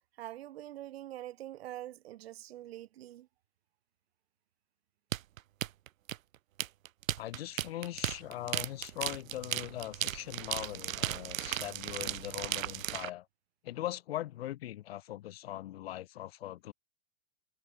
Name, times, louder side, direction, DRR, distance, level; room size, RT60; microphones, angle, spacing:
voice 1, 0.2-3.3, right 14 dB, 50° right, 6.1 m, -44 dB
sound 1, 5.1-13.1, right 12 dB, 85° right, 1.2 m, -36 dB
voice 2, 7.2-13.3 13.6-16.7, left 14 dB, 50° left, 7.4 m, -40 dB
supercardioid pair, 180°, 39 cm